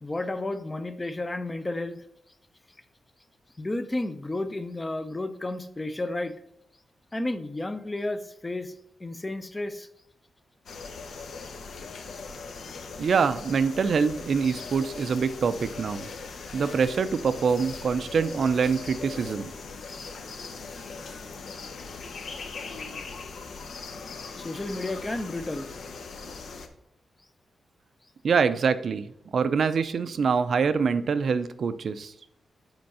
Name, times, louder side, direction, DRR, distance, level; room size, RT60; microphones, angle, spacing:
voice 1, 0.0-2.0 3.6-6.3 7.1-8.7 9.0-9.9 24.4-25.7, left 2 dB, 15° left, 10 dB, 0.6 m, -32 dB
sound 1, 10.7-26.7, left 4 dB, 75° left, 0.9 m, -40 dB
voice 2, 13.0-16.1 16.5-19.5 28.2-32.1, right 5 dB, 60° right, 12 dB, 0.5 m, -25 dB
7.9 x 4.5 x 5.5 m, 0.79 s
wide cardioid pair, 140°, 0 cm